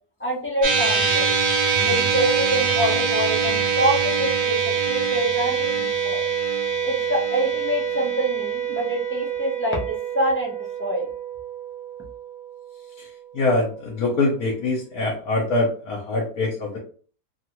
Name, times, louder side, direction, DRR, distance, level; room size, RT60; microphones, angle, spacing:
voice 1, 0.2-1.3 1.8-4.6 4.9-6.2 6.8-11.1, right 1 dB, 15° left, -4 dB, 0.4 m, -26 dB
sound 1, 0.6-13.1, right 6 dB, 40° right, 0.8 m, -24 dB
voice 2, 13.3-16.8, left 2 dB, 70° left, -2 dB, 1.2 m, -24 dB
3.0 x 2.4 x 2.9 m, 0.41 s
omnidirectional pair, 1.8 m